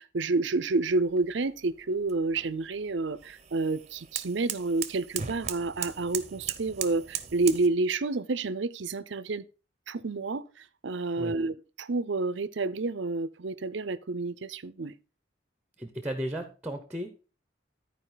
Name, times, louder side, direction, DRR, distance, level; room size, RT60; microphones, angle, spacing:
voice 1, 0.0-9.4 9.9-14.9, right 3 dB, 70° right, 0.6 m, -29 dB
sound 1, 0.9-7.7, right 9 dB, 35° right, 0.8 m, -39 dB
voice 2, 15.8-17.1, right 1 dB, 10° right, 0.9 m, -34 dB
13.5 x 4.8 x 4.0 m
head